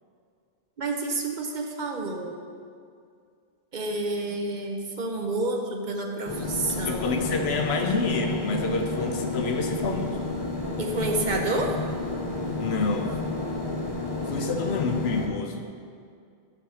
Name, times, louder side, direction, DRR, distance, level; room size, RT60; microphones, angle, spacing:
voice 1, 0.8-2.4 3.7-7.3 10.8-11.7, right 2 dB, 50° right, 2 dB, 0.9 m, -29 dB
sound 1, 6.3-15.3, left 2 dB, 25° left, 0.8 m, -31 dB
voice 2, 6.9-10.2 12.6-13.2 14.2-15.6, left 4 dB, 80° left, 4 dB, 1.0 m, -28 dB
10.0 x 3.5 x 6.2 m, 2.3 s
omnidirectional pair, 1.1 m